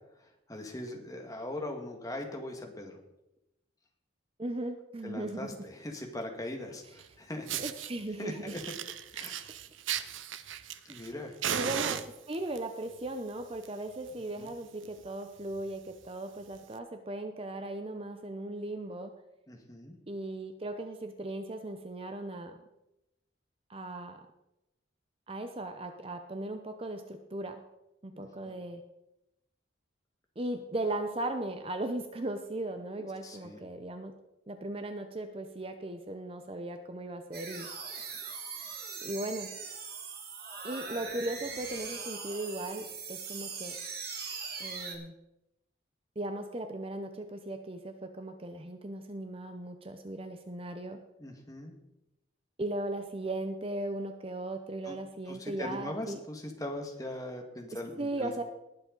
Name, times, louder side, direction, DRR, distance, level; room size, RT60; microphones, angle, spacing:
voice 1, 0.5-3.0 5.0-7.6 8.2-8.6 9.1-9.4 9.9-10.1 10.9-11.8 14.1-14.5 19.5-20.0 28.1-28.6 33.2-33.6 51.2-51.7 54.8-55.0 55.3-58.4, left 1 dB, 20° left, 3 dB, 1.6 m, -40 dB
voice 2, 4.4-5.6 7.6-8.6 11.5-19.1 20.1-22.6 23.7-24.2 25.3-27.6 28.0-28.8 30.4-34.1 34.5-37.7 39.0-39.5 40.6-43.8 44.6-45.1 46.2-51.0 52.6-56.2 58.0-58.4, right 1 dB, 30° right, 7 dB, 0.7 m, -37 dB
Fire, 7.0-7.1 7.5-7.9 8.5-11.1 11.4-12.6 13.4-13.7 14.0-14.1 14.5-14.6 14.8-15.1 15.6-15.7 16.6-16.7, right 9 dB, 80° right, 0.7 m, -35 dB
sound 1, 37.3-45.0, right 5 dB, 50° right, 2.0 m, -41 dB
19.5 x 7.8 x 3.9 m, 0.91 s
head